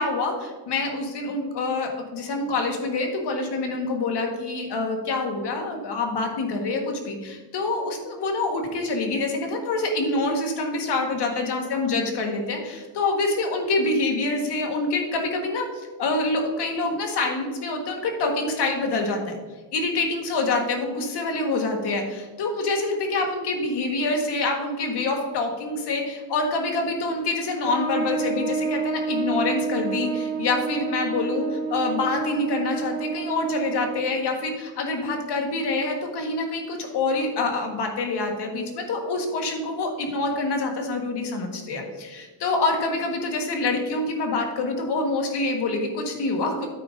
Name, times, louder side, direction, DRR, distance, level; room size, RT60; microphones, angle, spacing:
voice 1, 0.0-19.3 19.7-46.7, left 3 dB, 80° left, 3 dB, 1.6 m, -26 dB
Trumpet, 27.6-34.2, right 5 dB, 15° left, 2.8 m, -29 dB
9.3 x 8.5 x 2.7 m, 1.3 s
wide cardioid pair, 150°, 40 cm